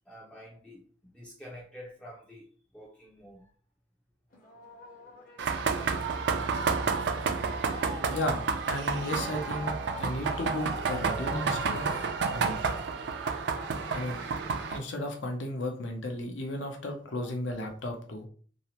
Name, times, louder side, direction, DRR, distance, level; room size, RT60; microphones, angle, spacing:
voice 1, 0.1-2.5 2.7-3.4 17.2-17.3, equal, 5° left, 0.3 m, -48 dB
Singing, 4.3-15.3, left 1 dB, 45° left, 0.7 m, -47 dB
sound 1, 5.4-14.8, right 5 dB, 65° right, 0.4 m, -30 dB
voice 2, 8.1-12.6 13.9-14.2 14.7-18.3, left 1 dB, 85° left, 0.6 m, -34 dB
2.7 x 2.0 x 2.8 m
head